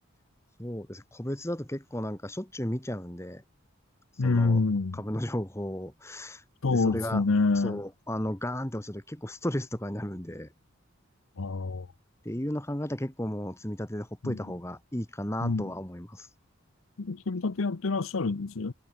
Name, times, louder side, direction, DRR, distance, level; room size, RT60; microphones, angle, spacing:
voice 1, 0.6-3.4 4.1-4.6 4.9-7.2 7.5-10.5 12.2-16.3, left 1 dB, 15° left, 1.7 m, -34 dB
voice 2, 4.2-5.0 6.6-7.8 11.4-11.9 14.2-14.4 15.4-15.6 17.0-18.7, left 3 dB, 80° left, 0.7 m, -27 dB
head